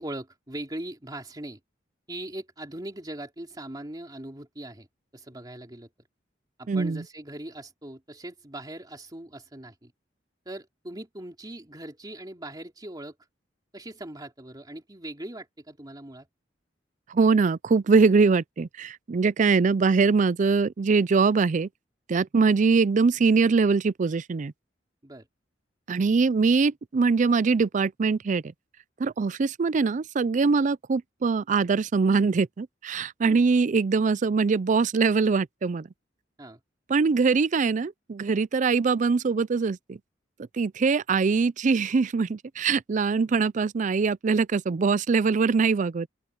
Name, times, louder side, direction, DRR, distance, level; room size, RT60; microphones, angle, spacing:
voice 1, 0.0-1.6 2.1-4.9 5.1-5.9 6.6-9.9 10.4-13.1 13.7-16.3 25.0-25.3 33.2-33.5 36.4-36.6, right 1 dB, 25° right, 3.0 m, -40 dB
voice 2, 6.7-7.0 17.1-21.7 22.1-24.5 25.9-28.4 29.0-35.9 36.9-40.0 40.6-46.1, right 4 dB, 45° right, 0.4 m, -23 dB
open air
head